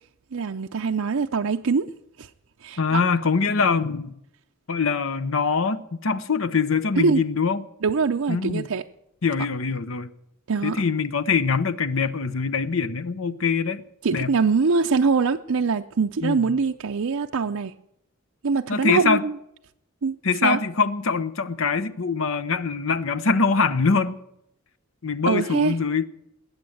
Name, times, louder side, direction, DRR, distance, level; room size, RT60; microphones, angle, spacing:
voice 1, 0.3-1.9 2.2-2.3 2.6-3.0 7.0-7.2 7.8-8.8 10.5-10.8 14.0-17.7 18.4-19.3 20.0-20.1 20.4-20.6 25.3-25.7, right 4 dB, 70° right, 0.6 m, -23 dB
voice 2, 2.8-4.1 4.7-7.6 8.3-8.7 9.2-10.1 10.6-13.8 14.1-14.3 16.2-16.5 18.7-19.2 20.2-24.2 25.0-26.0, left 5 dB, 65° left, 0.8 m, -23 dB
20.0 x 9.1 x 7.9 m
head